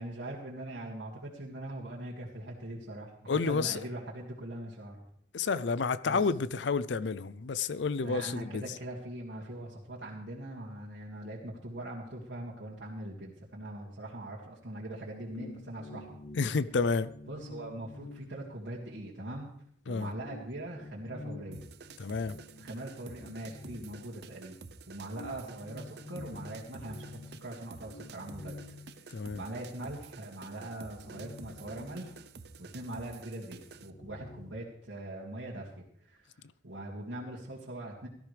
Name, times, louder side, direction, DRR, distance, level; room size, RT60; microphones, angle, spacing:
voice 1, 0.0-5.0 5.4-5.5 6.0-6.3 8.0-16.1 17.3-19.5 19.9-21.6 22.6-24.6 24.9-28.6 28.9-29.0 29.3-32.1 32.6-36.3 36.6-38.1, right 1 dB, 85° right, 2.3 m, -42 dB
voice 2, 3.3-3.8 5.3-8.7 16.4-17.1 19.9-20.1 22.0-22.4 29.1-29.4, left 4 dB, 80° left, 0.5 m, -30 dB
sound 1, 14.9-19.2 19.6-19.7 20.1-24.6 25.0-29.7 30.1-30.2 30.6-33.1 33.3-34.5, left 2 dB, 40° left, 0.7 m, -50 dB
sound 2, 21.5-33.9, right 4 dB, 60° right, 0.7 m, -51 dB
17.5 x 13.0 x 3.4 m
head